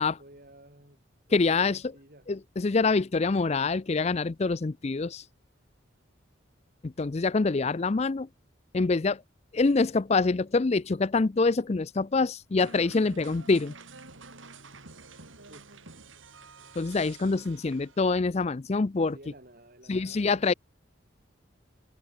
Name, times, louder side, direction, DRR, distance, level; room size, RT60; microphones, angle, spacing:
voice 1, 0.0-2.3 15.5-15.7 19.0-20.5, right 1 dB, 45° right, 6.4 m, -53 dB
voice 2, 1.3-1.8 2.3-5.2 6.8-8.3 8.7-9.2 9.5-13.7 16.8-19.2 19.9-20.5, left 3 dB, 35° left, 0.4 m, -25 dB
sound 1, 12.6-18.3, right 4 dB, 80° right, 4.0 m, -49 dB
head